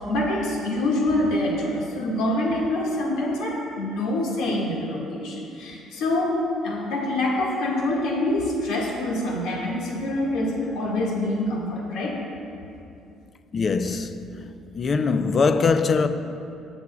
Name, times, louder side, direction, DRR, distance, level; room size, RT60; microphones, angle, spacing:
voice 1, 0.1-12.2, left 1 dB, 75° left, 1.9 m, -25 dB
voice 2, 13.5-14.4 14.7-16.1, left 4 dB, 35° left, 0.5 m, -22 dB
18.5 x 7.1 x 2.4 m
cardioid pair, 110°, 0 cm